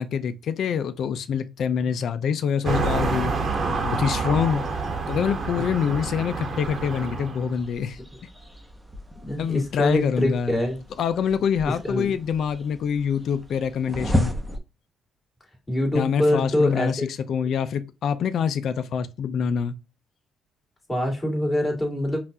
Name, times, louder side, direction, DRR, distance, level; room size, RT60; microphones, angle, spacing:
voice 1, 0.0-3.3 3.7-4.7 5.1-8.0 9.4-10.6 11.0-14.3 15.9-19.7, left 7 dB, 65° left, 0.4 m, -25 dB
sound 1, 2.6-7.5, right 3 dB, 45° right, 1.0 m, -27 dB
sound 2, 7.5-14.6, left 1 dB, 5° right, 0.9 m, -33 dB
voice 2, 9.2-10.8 11.8-12.2 15.7-17.1 17.4-17.5 20.9-22.2, left 1 dB, 25° left, 2.0 m, -24 dB
5.7 x 2.4 x 2.7 m
cardioid pair, 90°, 0 cm